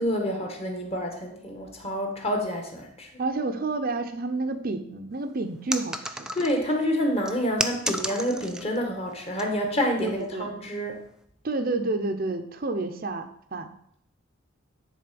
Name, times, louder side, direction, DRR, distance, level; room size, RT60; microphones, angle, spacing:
voice 1, 0.0-3.1 6.3-11.0, equal, 30° left, 2 dB, 1.4 m, -28 dB
voice 2, 3.2-6.3 10.0-10.5 11.4-13.7, right 3 dB, 45° right, 7 dB, 0.6 m, -30 dB
sound 1, 5.7-6.7 7.2-8.8 9.1-9.4 10.1-10.3, right 1 dB, 5° right, 0.4 m, -32 dB
10.0 x 3.8 x 5.2 m, 0.69 s
head